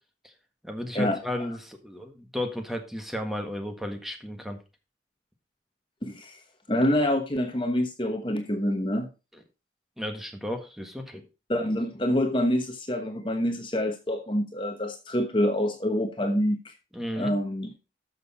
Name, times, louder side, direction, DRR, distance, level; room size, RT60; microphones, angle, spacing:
voice 1, 0.6-4.6 10.0-11.2 16.9-17.3, left 1 dB, ahead, 5 dB, 1.6 m, -34 dB
voice 2, 6.0-6.4 6.7-9.1 11.5-16.7 17.2-17.7, left 1 dB, 25° left, 5 dB, 1.1 m, -26 dB
13.0 x 6.5 x 4.3 m, 0.29 s
head